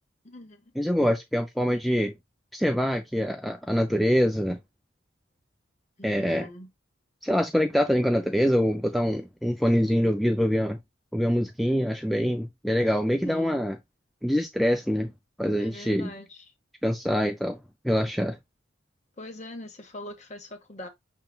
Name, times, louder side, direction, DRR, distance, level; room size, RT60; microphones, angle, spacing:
voice 1, 0.2-0.7 6.0-6.7 13.2-13.6 15.6-16.5 19.2-20.9, left 1 dB, 35° left, 0.8 m, -42 dB
voice 2, 0.8-2.1 2.5-4.6 6.0-6.5 7.2-10.8 11.1-13.8 14.2-15.1 15.4-16.1 16.8-17.6 17.8-18.4, equal, ahead, 0.3 m, -24 dB
5.6 x 3.7 x 2.3 m
head